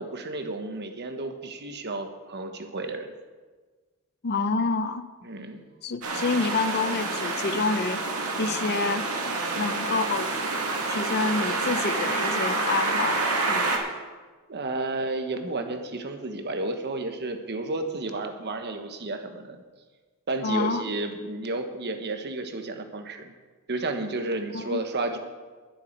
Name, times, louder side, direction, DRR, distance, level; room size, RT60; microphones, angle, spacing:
voice 1, 0.0-3.1 5.2-5.6 14.5-19.6 20.3-23.3 23.7-25.2, right 2 dB, 50° right, 6 dB, 1.3 m, -32 dB
voice 2, 4.2-5.1 5.8-8.0 8.4-9.1 9.5-10.3 10.9-13.8 20.4-20.9 24.5-24.8, left 4 dB, 45° left, 12 dB, 0.6 m, -28 dB
sound 1, 6.0-13.8, right 3 dB, 80° right, 2.2 m, -28 dB
21.0 x 7.1 x 4.6 m, 1.4 s
head